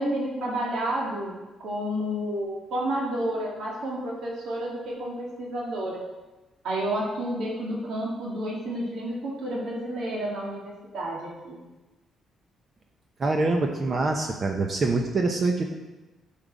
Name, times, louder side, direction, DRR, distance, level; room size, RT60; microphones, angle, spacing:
voice 1, 0.0-6.0 6.6-11.6, right 1 dB, 75° right, -4 dB, 1.9 m, -30 dB
voice 2, 13.2-15.6, right 3 dB, 40° right, 3 dB, 0.8 m, -25 dB
8.7 x 5.7 x 5.0 m, 1.1 s
cardioid pair, 90°, 0 cm